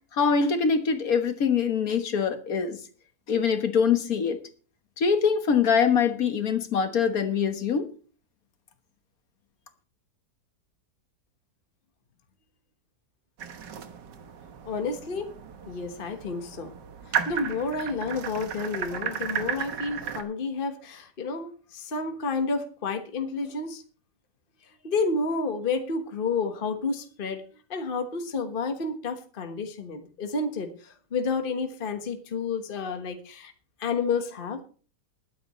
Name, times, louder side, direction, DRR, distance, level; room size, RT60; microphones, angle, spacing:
voice 1, 0.1-2.8 3.3-4.4 5.0-7.9, left 6 dB, 60° left, 8 dB, 1.7 m, -24 dB
sound 1, 13.4-20.2, right 8 dB, 85° right, 1.9 m, -34 dB
voice 2, 14.6-15.3 15.7-16.7 17.3-23.8 24.8-27.4 27.7-33.5 33.8-34.6, left 4 dB, 35° left, 6 dB, 1.4 m, -30 dB
20.5 x 9.4 x 3.1 m, 0.39 s
omnidirectional pair, 1.8 m